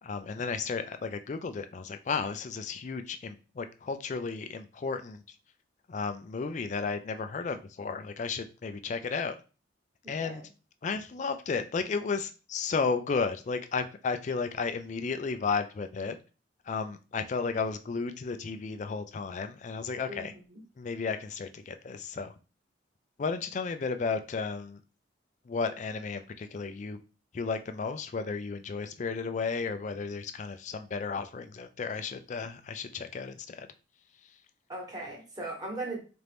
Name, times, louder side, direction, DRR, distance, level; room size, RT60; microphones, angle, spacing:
voice 1, 0.0-5.2 5.9-9.4 10.1-10.4 10.8-16.2 16.7-20.3 20.8-22.3 23.2-24.8 25.5-27.0 27.3-33.7, left 4 dB, 40° left, 9 dB, 0.3 m, -33 dB
voice 2, 10.0-10.5 20.1-20.6 34.7-36.0, right 2 dB, 20° right, -2 dB, 1.2 m, -39 dB
4.2 x 2.5 x 3.4 m, 0.34 s
head